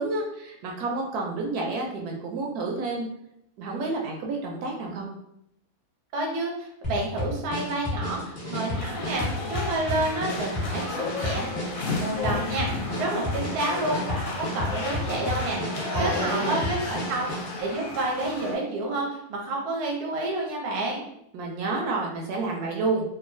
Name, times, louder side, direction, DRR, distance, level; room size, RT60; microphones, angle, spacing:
voice 1, 0.0-3.1 3.6-5.1 15.9-16.6 21.3-23.0, right 3 dB, 75° right, 0 dB, 1.0 m, -29 dB
voice 2, 6.1-11.5 11.9-17.3 17.6-21.0, right 2 dB, 55° right, -1 dB, 0.8 m, -29 dB
sound 1, 6.8-17.6, left 1 dB, 30° left, 1.0 m, -32 dB
sound 2, 8.8-18.5, left 3 dB, 65° left, 1.0 m, -33 dB
2.9 x 2.3 x 2.6 m, 0.78 s
omnidirectional pair, 1.7 m